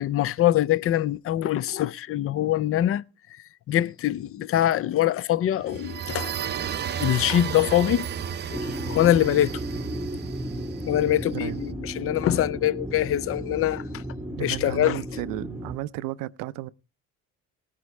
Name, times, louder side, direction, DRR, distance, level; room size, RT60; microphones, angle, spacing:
voice 1, 0.0-3.0 3.7-6.3 7.0-8.1 8.5-9.6 10.8-14.0 14.4-15.0, left 12 dB, 45° left, 0.5 m, -24 dB
sound 1, 5.6-11.3, right 8 dB, 30° right, 0.6 m, -33 dB
sound 2, 8.5-15.8, equal, 5° right, 0.9 m, -34 dB
voice 2, 14.3-16.7, right 16 dB, 75° right, 0.6 m, -33 dB
18.5 x 9.7 x 3.2 m
supercardioid pair, 90°, 32 cm